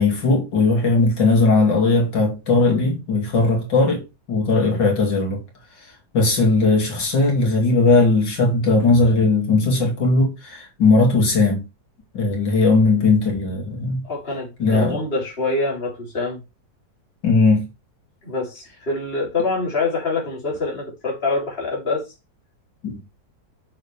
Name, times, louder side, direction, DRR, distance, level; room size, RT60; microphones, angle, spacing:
voice 1, 0.0-4.0 4.3-5.4 6.1-11.7 12.1-14.0 14.6-15.0 17.2-17.6 22.8-23.0, left 3 dB, 80° left, 3.3 m, -18 dB
voice 2, 14.0-16.4 18.2-22.1, left 3 dB, 30° left, 3.4 m, -25 dB
7.8 x 7.0 x 3.4 m
omnidirectional pair, 1.9 m